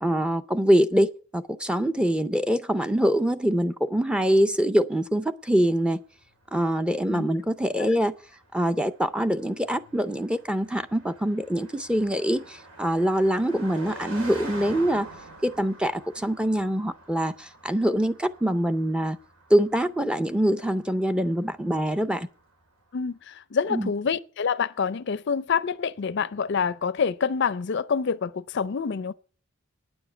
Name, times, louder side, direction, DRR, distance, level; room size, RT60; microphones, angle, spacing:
voice 1, 0.0-6.0 6.5-8.1 8.5-15.1 15.4-19.2 19.5-22.3 23.7-23.9, equal, 5° right, 0.5 m, -24 dB
Car passing by, 6.2-22.6, right 2 dB, 90° right, 4.0 m, -46 dB
voice 2, 22.9-29.1, left 6 dB, 55° left, 0.4 m, -27 dB
9.6 x 7.1 x 8.4 m
head